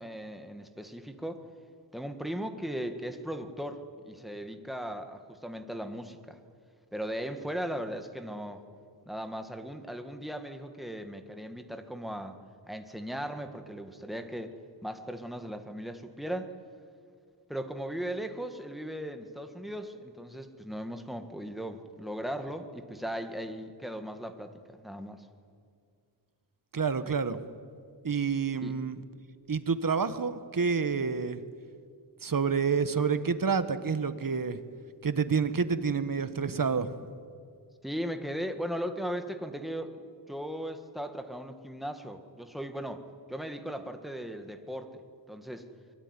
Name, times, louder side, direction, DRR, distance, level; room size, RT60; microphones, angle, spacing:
voice 1, 0.0-1.4 1.9-6.4 6.9-8.6 9.0-12.4 12.7-14.6 14.8-16.5 17.5-25.3 28.6-28.7 37.8-40.0 40.3-45.0 45.3-45.7, equal, ahead, 6 dB, 1.8 m, -37 dB
voice 2, 26.7-27.4 28.0-29.0 29.5-31.4 32.2-34.6 35.0-37.0, right 5 dB, 45° right, 11 dB, 1.4 m, -28 dB
24.5 x 23.0 x 9.8 m, 2.2 s
wide cardioid pair, 130°, 44 cm